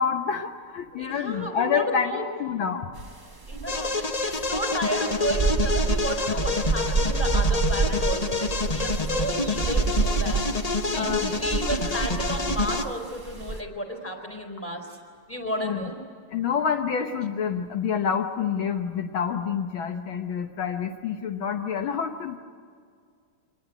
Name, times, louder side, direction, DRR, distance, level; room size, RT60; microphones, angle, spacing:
voice 1, 0.0-2.1 2.4-2.9 11.0-11.3 15.6-15.9 16.3-22.4, left 7 dB, 70° left, 5 dB, 1.8 m, -27 dB
voice 2, 0.9-2.3 3.5-15.0 15.3-15.9, right 1 dB, 5° left, 2 dB, 4.2 m, -32 dB
sound 1, 3.0-3.1 3.4-13.6, right 5 dB, 20° right, 0.5 m, -28 dB
sound 2, 3.7-12.8, left 4 dB, 55° left, 0.4 m, -28 dB
25.5 x 19.0 x 9.2 m, 2.1 s
omnidirectional pair, 2.4 m